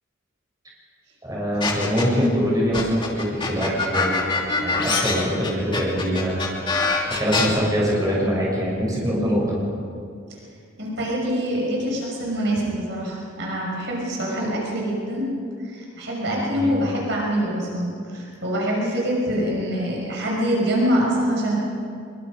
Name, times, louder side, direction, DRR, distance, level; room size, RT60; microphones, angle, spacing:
voice 1, 1.2-4.3 4.6-6.3 7.2-9.6 16.3-16.8, equal, 20° right, -5 dB, 7.1 m, -23 dB
sound 1, 1.6-2.3 2.7-7.5, left 4 dB, 25° left, 2.8 m, -24 dB
voice 2, 10.8-15.3 15.7-21.6, equal, 65° right, -3 dB, 6.1 m, -25 dB
25.0 x 23.5 x 5.2 m, 2.3 s
head